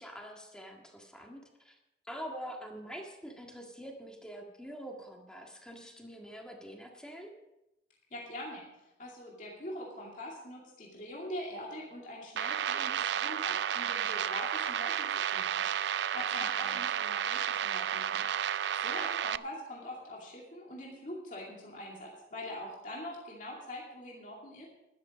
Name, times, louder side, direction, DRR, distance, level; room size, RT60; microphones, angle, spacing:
voice 1, 0.0-1.7 2.0-7.3 16.4-16.7, equal, 5° left, 1 dB, 1.7 m, -45 dB
voice 2, 8.1-15.7 16.1-18.3 18.7-24.7, left 1 dB, 45° left, -3 dB, 2.5 m, -43 dB
sound 1, 12.4-19.4, right 9 dB, 85° right, 0.4 m, -32 dB
12.5 x 11.5 x 5.1 m, 0.93 s
head